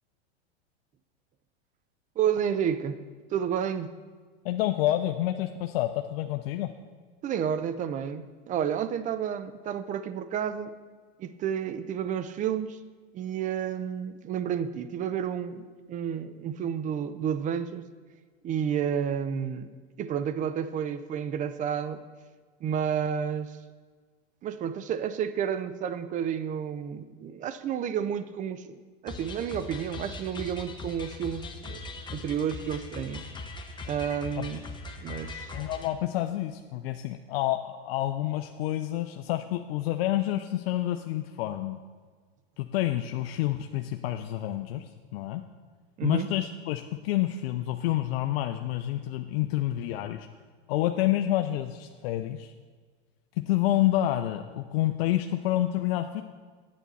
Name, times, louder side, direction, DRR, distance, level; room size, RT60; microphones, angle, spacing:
voice 1, 2.2-3.0 3.3-4.0 7.2-10.7 11.2-12.8 13.1-17.9 18.4-19.7 20.0-22.0 22.6-23.6 24.4-28.8 29.0-31.8 32.1-33.3 33.8-34.6 35.0-35.5 46.0-46.3, right 8 dB, 25° right, 12 dB, 0.4 m, -31 dB
voice 2, 4.4-6.7 34.4-34.5 35.5-41.8 42.6-45.4 46.0-50.3 50.7-52.5 53.4-56.2, left 14 dB, 65° left, 7 dB, 0.5 m, -28 dB
sound 1, 29.1-35.9, left 2 dB, 15° left, 0.8 m, -40 dB
9.0 x 8.3 x 4.1 m, 1.5 s
hypercardioid pair, 115°, 32 cm